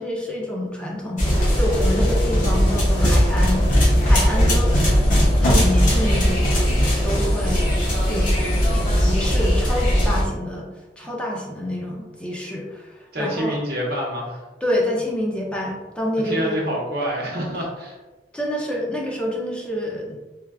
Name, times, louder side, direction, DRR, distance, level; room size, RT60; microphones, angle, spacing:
voice 1, 0.0-3.6 4.0-4.9 5.4-6.5 7.0-7.8 8.1-8.3 8.7-10.7 11.0-13.6 14.6-16.6 18.3-20.2, left 1 dB, 5° left, -3 dB, 0.4 m, -27 dB
sound 1, 1.2-10.2, equal, 45° left, 0.7 m, -18 dB
voice 2, 13.1-14.4 16.2-18.0, equal, 60° right, -2 dB, 0.8 m, -27 dB
3.3 x 2.3 x 2.3 m, 1.2 s
head